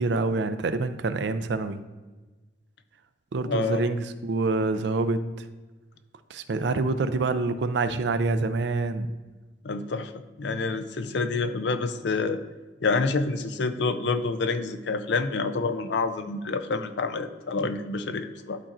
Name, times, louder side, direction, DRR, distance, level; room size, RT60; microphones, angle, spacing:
voice 1, 0.0-1.8 3.3-5.2 6.3-9.1, right 3 dB, 65° right, 11 dB, 0.4 m, -26 dB
voice 2, 3.5-3.8 9.6-10.1 10.4-12.4 12.8-18.6, left 3 dB, 65° left, 10 dB, 0.5 m, -27 dB
11.0 x 4.3 x 2.5 m, 1.2 s
head